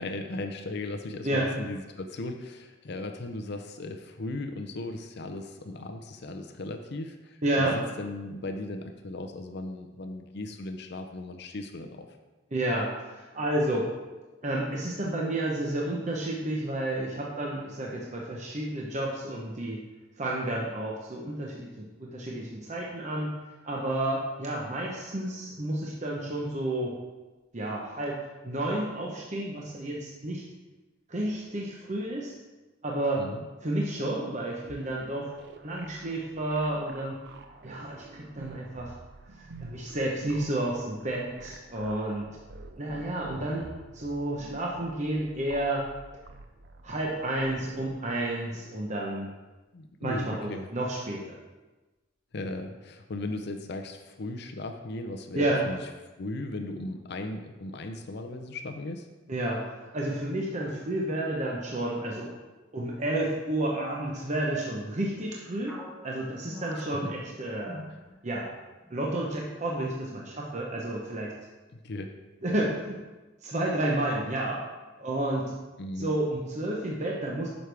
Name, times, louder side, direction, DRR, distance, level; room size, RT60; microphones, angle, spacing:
voice 1, 0.0-12.1 33.2-33.4 49.7-50.7 52.3-55.8 56.2-59.1 71.8-72.1 75.8-76.1, left 2 dB, 60° left, 5 dB, 0.6 m, -37 dB
voice 2, 7.4-7.8 12.5-13.9 14.4-19.8 20.2-23.3 23.6-26.9 27.5-28.2 28.4-30.4 31.1-32.4 32.8-33.2 33.6-35.3 35.6-37.1 37.6-38.9 39.6-42.3 42.8-43.7 43.9-45.8 46.8-49.3 50.0-51.4 55.3-55.6 59.3-59.7 59.9-62.3 62.7-65.7 66.0-67.8 68.2-68.5 68.9-71.3 72.4-73.0 73.4-74.6 75.0-75.5 76.0-77.5, right 1 dB, 40° right, -2 dB, 0.9 m, -31 dB
sound 1, 34.6-48.3, right 3 dB, 60° right, 0.6 m, -48 dB
sound 2, 65.7-68.5 68.8-69.1 69.7-70.2, left 1 dB, 5° right, 0.9 m, -44 dB
9.4 x 6.2 x 3.4 m, 1.2 s
head